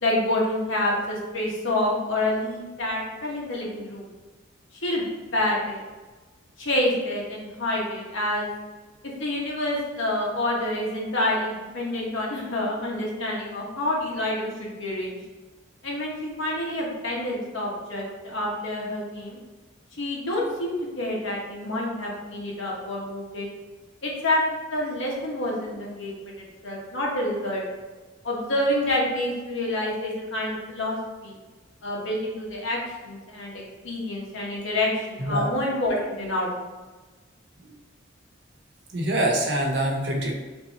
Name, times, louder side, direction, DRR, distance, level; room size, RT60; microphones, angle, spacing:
voice 1, 0.0-4.0 4.8-5.0 5.3-5.8 6.6-8.5 9.2-15.2 15.8-19.4 20.0-23.5 24.0-24.4 24.7-27.6 28.2-31.0 31.2-31.4 31.8-32.8 33.0-36.5, left 1 dB, 70° left, -3 dB, 1.2 m, -28 dB
voice 2, 35.2-35.5 38.9-40.3, right 1 dB, 55° right, 0 dB, 0.9 m, -24 dB
3.6 x 2.9 x 4.1 m, 1.3 s
head